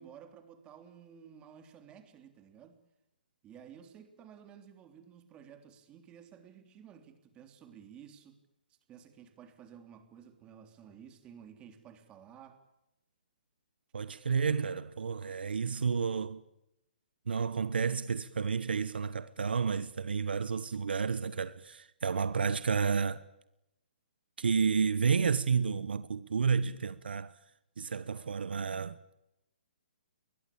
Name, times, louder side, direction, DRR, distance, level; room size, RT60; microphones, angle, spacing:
voice 1, 0.0-2.8 3.4-8.4 8.7-12.6, right 8 dB, 20° right, 3.4 m, -53 dB
voice 2, 13.9-16.4 17.3-23.2 24.4-27.4 27.8-29.0, right 5 dB, 80° right, 1.2 m, -31 dB
28.0 x 21.5 x 8.7 m
hypercardioid pair, 150°, 5 cm